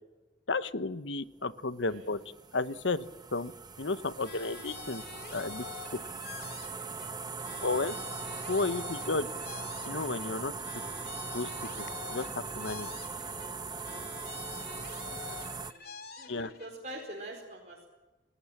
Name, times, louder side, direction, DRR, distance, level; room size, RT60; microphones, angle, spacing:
voice 1, 0.5-2.2 2.5-3.0 3.3-3.5 3.8-5.0 5.3-5.6 7.6-7.9 8.5-9.3 9.8-10.5 11.3-11.5 11.8-12.9 16.3-16.5, left 3 dB, 85° left, 13 dB, 1.1 m, -32 dB
sound 1, 1.3-15.7, right 4 dB, 20° right, 1.1 m, -40 dB
voice 2, 1.8-2.2 15.2-15.4 15.7-15.8 16.2-17.8, right 1 dB, 40° right, -2 dB, 4.7 m, -45 dB
sound 2, 4.2-7.1 7.4-10.3 10.6-13.5 13.8-16.7, left 6 dB, 55° left, 3.1 m, -47 dB
29.0 x 19.0 x 7.4 m, 1.2 s
head